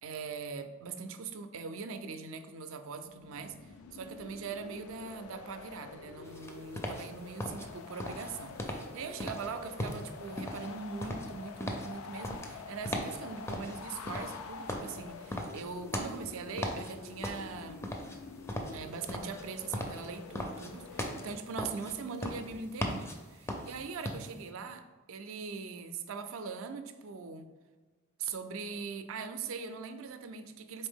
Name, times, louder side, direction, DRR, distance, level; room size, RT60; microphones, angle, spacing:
voice 1, 0.0-3.6 3.9-18.0 18.7-27.5 28.2-30.9, right 5 dB, 65° right, 9 dB, 0.4 m, -41 dB
sound 1, 3.0-21.4, left 5 dB, 85° left, 0.3 m, -48 dB
sound 2, 6.2-24.5, left 1 dB, 15° left, 0.4 m, -39 dB
4.2 x 3.4 x 3.5 m, 1.4 s
head